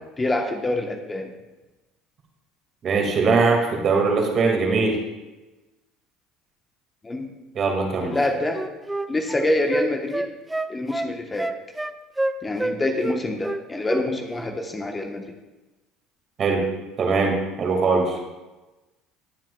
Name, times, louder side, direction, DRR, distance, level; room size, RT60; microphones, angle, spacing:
voice 1, 0.2-1.3 7.0-7.3 8.0-8.6 9.1-10.3 10.7-11.5 12.4-15.2, left 2 dB, 20° left, 3 dB, 1.3 m, -26 dB
voice 2, 2.8-5.0 7.5-8.2 16.4-16.6 17.0-18.2, right 4 dB, 45° right, 1 dB, 2.3 m, -21 dB
Wind instrument woodwind instrument, 8.1-12.8 13.0-14.1 14.3-14.5, right 2 dB, 10° right, 0.5 m, -28 dB
21.0 x 7.5 x 2.4 m, 1.1 s
hypercardioid pair, 65°, 0 cm